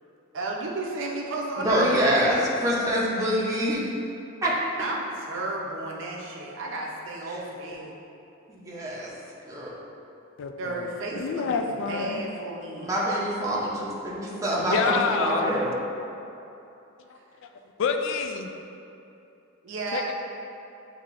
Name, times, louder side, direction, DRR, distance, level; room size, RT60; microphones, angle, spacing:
voice 1, 0.3-2.5 4.8-7.9 10.6-12.9 14.7-14.8 17.2-17.3 19.6-20.1, right 2 dB, 60° right, -2 dB, 0.6 m, -33 dB
voice 2, 1.6-3.8 4.4-4.5 8.5-9.1 9.4-9.7 12.8-13.8 14.4-15.8, equal, 15° right, -7 dB, 0.6 m, -25 dB
voice 3, 10.4-10.9 11.2-12.2 14.6-15.6 17.1-17.2 17.8-18.5 19.9-20.1, left 5 dB, 60° left, 5 dB, 0.3 m, -28 dB
7.1 x 2.8 x 2.5 m, 2.8 s
head